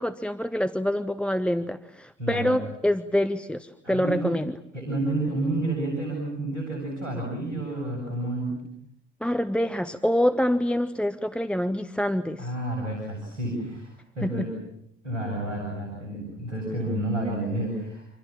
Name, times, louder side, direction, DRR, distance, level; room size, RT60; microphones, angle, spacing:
voice 1, 0.0-4.5 9.2-12.5 14.2-14.5, left 1 dB, 5° left, 9 dB, 1.2 m, -26 dB
voice 2, 2.2-2.6 3.8-4.3 4.7-8.6 12.4-13.9 14.2-14.5 15.0-18.0, right 1 dB, 85° right, 0 dB, 7.9 m, -30 dB
29.5 x 26.5 x 7.3 m, 0.73 s
figure-of-eight pair, 55°, 36 cm